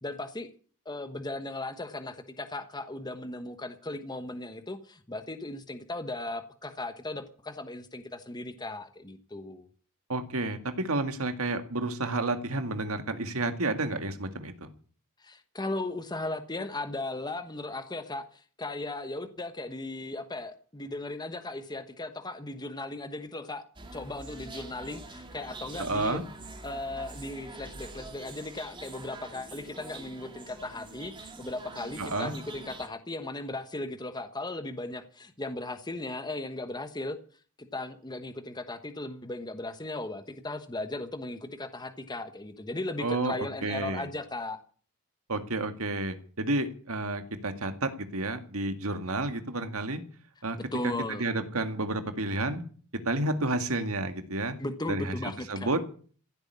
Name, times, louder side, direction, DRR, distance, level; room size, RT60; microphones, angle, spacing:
voice 1, 0.0-0.5 0.8-9.7 15.2-23.6 23.9-26.2 26.6-37.2 37.6-44.6 50.7-51.3 54.6-55.7, left 2 dB, 20° left, 9 dB, 1.2 m, -37 dB
voice 2, 10.1-14.7 25.8-26.2 32.0-32.3 43.0-43.4 43.6-44.1 45.3-50.0 50.4-50.6 50.8-52.6 53.0-54.6 54.9-55.2 55.5-55.8, right 2 dB, 70° right, 8 dB, 2.0 m, -30 dB
sound 1, 23.8-32.9, right 2 dB, 20° right, 2.3 m, -45 dB
15.5 x 8.0 x 9.8 m, 0.43 s
head